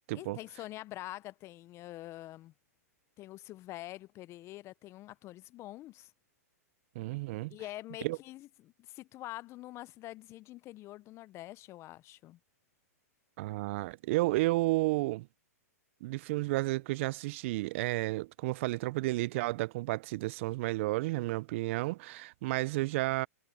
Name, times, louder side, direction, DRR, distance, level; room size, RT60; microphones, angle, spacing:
voice 1, 0.1-2.5 3.2-6.1 7.5-12.4, left 16 dB, 30° left, 0.9 m, -45 dB
voice 2, 7.0-7.6 8.0-8.2 13.4-15.3 16.0-23.3, right 20 dB, 50° right, 0.6 m, -32 dB
hypercardioid pair, 120°, 9 cm